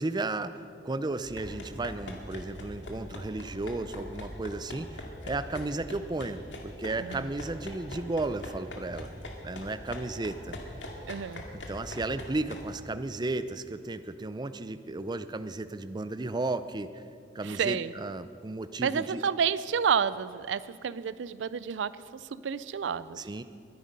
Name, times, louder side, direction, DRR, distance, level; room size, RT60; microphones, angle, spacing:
voice 1, 0.0-9.1 9.4-10.6 11.7-17.0 17.3-19.2 23.2-23.4, right 2 dB, 25° right, 12 dB, 0.5 m, -34 dB
sound 1, 1.2-12.7, left 1 dB, 80° left, 2.1 m, -42 dB
voice 2, 11.1-11.4 17.4-17.9 18.8-23.2, right 7 dB, 80° right, 16 dB, 0.4 m, -30 dB
22.5 x 10.5 x 5.4 m, 2.4 s
head